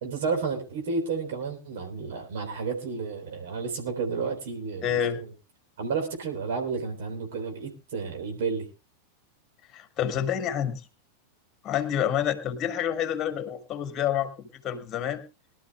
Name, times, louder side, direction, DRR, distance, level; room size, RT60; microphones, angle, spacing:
voice 1, 0.0-5.3 5.8-8.7, right 5 dB, 55° right, 3 dB, 3.6 m, -31 dB
voice 2, 4.8-5.2 9.7-10.8 11.6-15.2, left 9 dB, 30° left, 10 dB, 2.0 m, -28 dB
23.0 x 12.5 x 2.3 m, 0.29 s
figure-of-eight pair, 90°, 0 cm